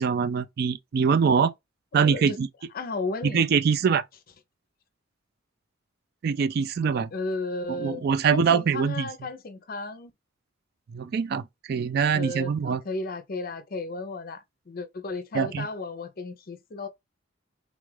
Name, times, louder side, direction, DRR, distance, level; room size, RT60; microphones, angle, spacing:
voice 1, 0.0-1.5 1.9-2.5 3.3-4.0 6.2-7.1 7.7-9.1 10.9-12.8 15.3-15.7, right 6 dB, 55° right, 0.3 m, -24 dB
voice 2, 1.9-2.4 2.7-3.4 7.1-8.0 8.3-10.1 12.1-16.9, left 2 dB, 50° left, 0.6 m, -34 dB
3.5 x 2.4 x 3.2 m
head